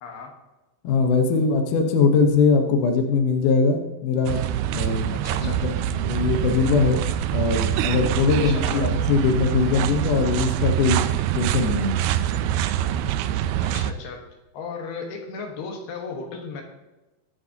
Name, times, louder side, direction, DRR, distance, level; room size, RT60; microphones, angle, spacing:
voice 1, 0.0-0.3 5.1-5.6 8.4-8.9 13.6-14.2 14.5-16.6, left 4 dB, 80° left, 2 dB, 3.5 m, -35 dB
voice 2, 0.8-4.4 4.7-5.1 5.4-7.0 7.3-11.1 11.4-12.0, left 4 dB, 65° left, 3 dB, 2.4 m, -21 dB
sound 1, 4.3-13.9, right 11 dB, 85° right, 2.5 m, -25 dB
22.0 x 8.0 x 2.9 m, 1.1 s
omnidirectional pair, 4.4 m